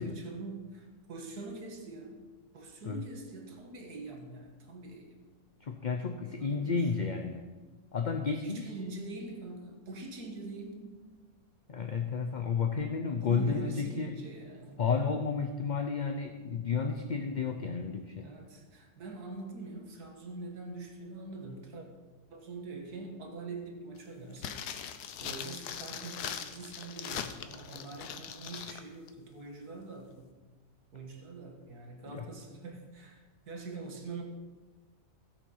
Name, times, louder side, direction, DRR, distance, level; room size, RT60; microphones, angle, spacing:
voice 1, 0.0-2.2 2.5-5.2 6.4-6.8 8.4-10.9 13.2-14.8 18.2-21.9 22.3-24.7 25.2-30.3 30.9-34.2, right 3 dB, 85° right, 2 dB, 2.1 m, -44 dB
voice 2, 5.6-7.5 7.9-8.7 11.7-14.2 14.8-18.3 32.1-32.3, left 5 dB, 45° left, 5 dB, 0.6 m, -32 dB
sound 1, 24.4-28.8 29.1-29.2, left 8 dB, 90° left, 1.3 m, -40 dB
16.0 x 7.0 x 5.6 m, 1.3 s
omnidirectional pair, 1.6 m